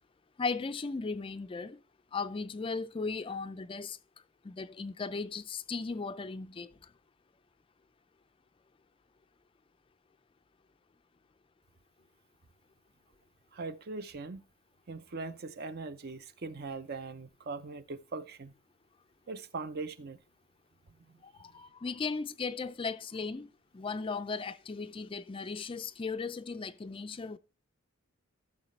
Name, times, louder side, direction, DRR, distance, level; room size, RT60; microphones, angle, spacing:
voice 1, 0.4-1.8 2.1-4.0 4.4-6.7 21.4-23.5 23.7-27.4, left 4 dB, 25° left, 0.4 m, -36 dB
voice 2, 13.5-14.4 14.9-18.5 19.3-20.2 21.1-21.2, right 3 dB, 50° right, 0.6 m, -40 dB
13.0 x 6.5 x 3.2 m
head